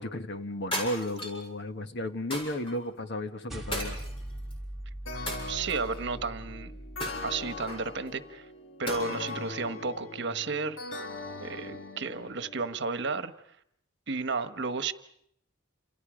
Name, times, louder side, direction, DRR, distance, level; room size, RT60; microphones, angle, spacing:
voice 1, 0.0-4.0, left 1 dB, 60° left, 7 dB, 1.5 m, -34 dB
sound 1, 0.7-1.5 2.3-2.7 3.7-4.5 5.3-6.0 7.0-7.9 8.9-9.4, equal, 30° left, 7.2 m, -36 dB
sound 2, 3.5-8.1, right 1 dB, ahead, 3.6 m, -41 dB
sound 3, 5.1-12.7, left 3 dB, 85° left, 1.6 m, -41 dB
voice 2, 5.5-6.7 7.2-8.4 8.8-10.8 11.4-13.3 14.1-14.9, right 4 dB, 65° right, 10 dB, 1.2 m, -32 dB
29.5 x 28.0 x 5.1 m, 0.71 s
head